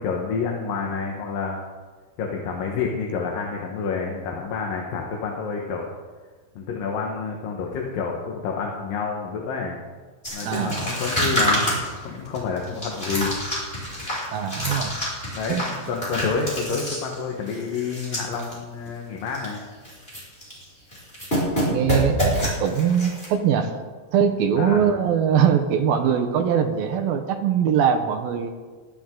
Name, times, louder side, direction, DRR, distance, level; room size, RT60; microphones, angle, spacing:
voice 1, 0.0-1.6 2.2-5.9 6.6-9.8 10.3-11.7 12.0-13.3 15.3-19.6 24.6-24.9, left 5 dB, 65° left, 0 dB, 2.7 m, -28 dB
sound 1, 10.2-18.5 18.8-18.9 19.3-19.6 19.8-20.6 20.9-23.3, equal, 15° left, 5.8 m, -27 dB
voice 2, 10.5-10.8 14.3-15.0 15.5-15.7 21.6-23.8 24.1-28.5, right 8 dB, 75° right, 6 dB, 2.5 m, -22 dB
20.5 x 13.5 x 3.8 m, 1.4 s
omnidirectional pair, 4.8 m